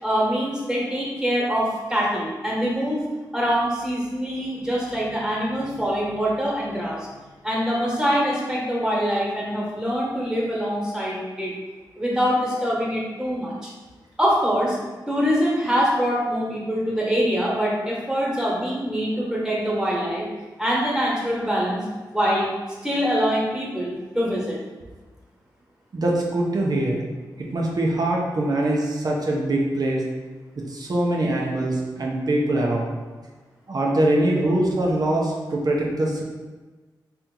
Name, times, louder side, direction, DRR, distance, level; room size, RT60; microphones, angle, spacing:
voice 1, 0.0-3.0 3.3-7.2 7.4-11.5 12.0-13.7 14.2-14.8 15.1-20.3 20.6-21.9 22.1-22.5 22.8-24.6, equal, 5° right, -5 dB, 1.4 m, -24 dB
voice 2, 25.9-27.0 27.5-30.0 30.7-32.9 33.7-36.2, right 1 dB, 50° right, -3 dB, 0.7 m, -23 dB
3.4 x 2.9 x 3.8 m, 1.3 s
cardioid pair, 55°, 8 cm